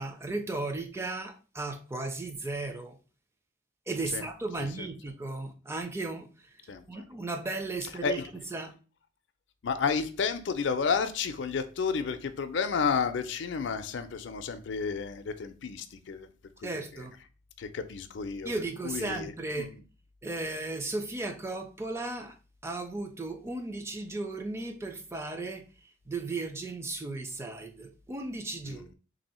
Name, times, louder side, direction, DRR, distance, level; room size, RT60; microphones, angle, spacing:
voice 1, 0.0-3.0 3.9-6.5 6.9-8.2 8.5-8.7 16.6-17.1 18.4-19.7 20.2-22.3 22.6-25.6 26.1-28.9, right 2 dB, 15° right, 0.4 m, -35 dB
voice 2, 6.7-7.0 8.0-8.3 9.6-16.3 16.6-17.0 17.6-18.5 18.8-19.3 19.6-19.8 28.7-28.9, left 5 dB, 65° left, 0.4 m, -31 dB
3.2 x 2.7 x 4.2 m
head